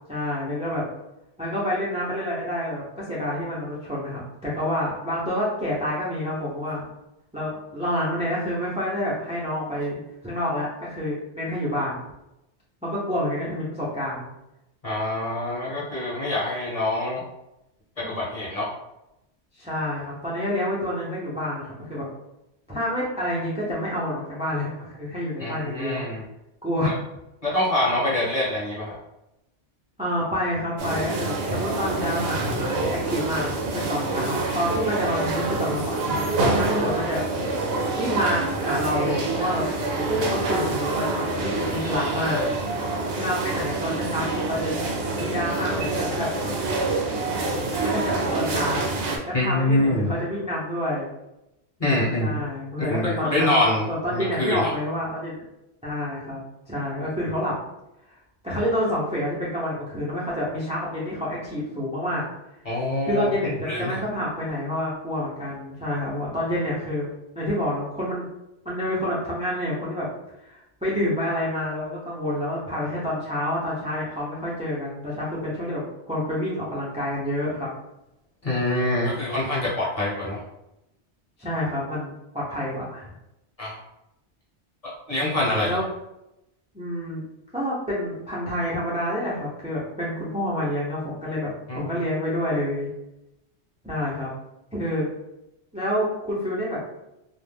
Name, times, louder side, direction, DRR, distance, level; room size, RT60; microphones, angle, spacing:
voice 1, 0.1-0.9 1.4-6.9 7.3-10.0 10.2-12.0 12.8-14.3 19.5-22.1 22.7-26.0 26.6-27.0 30.0-37.2 37.7-42.4 42.9-44.7 45.1-46.3 47.8-48.9 49.3-51.1 52.2-53.6 53.9-55.4 55.8-56.4 56.7-57.6 58.4-62.2 63.0-67.1 67.4-68.3 68.6-70.1 70.4-77.7 81.4-83.1 85.6-85.8 86.7-87.2 87.5-92.9 93.8-94.3 94.7-95.1 95.7-96.8, left 1 dB, 10° right, -7 dB, 0.4 m, -28 dB
voice 2, 14.8-17.2 18.0-18.7 25.4-26.2 27.4-29.0 49.3-50.1 51.8-52.4 52.9-53.9 54.1-54.7 62.6-63.3 63.6-64.0 78.4-80.4 83.6-83.8 85.1-85.8 91.7-91.9, left 1 dB, 35° left, -7 dB, 0.9 m, -25 dB
sound 1, 30.8-49.2, right 2 dB, 65° right, 0.8 m, -26 dB
2.4 x 2.1 x 3.3 m, 0.89 s
omnidirectional pair, 1.2 m